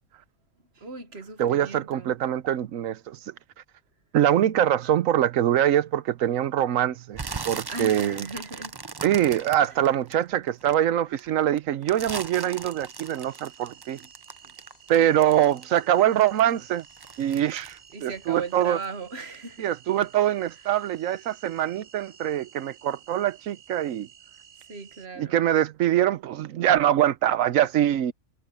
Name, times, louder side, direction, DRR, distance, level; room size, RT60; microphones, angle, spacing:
voice 1, 0.7-2.2 7.7-8.8 9.6-9.9 14.4-14.5 17.9-19.7 20.7-20.8 24.6-25.5, right 4 dB, 55° right, 1.7 m, -37 dB
voice 2, 1.4-3.2 4.1-7.2 7.5-8.2 9.0-14.0 14.9-16.8 17.2-18.8 19.6-24.1 25.2-28.1, right 11 dB, 80° right, 1.1 m, -23 dB
sound 1, 7.1-10.7 11.2-15.9 16.2-18.9 19.2-19.6 20.0-20.1, right 4 dB, 35° right, 0.4 m, -38 dB
sound 2, 12.1-25.1, right 9 dB, 80° left, 8.1 m, -53 dB
omnidirectional pair, 1.4 m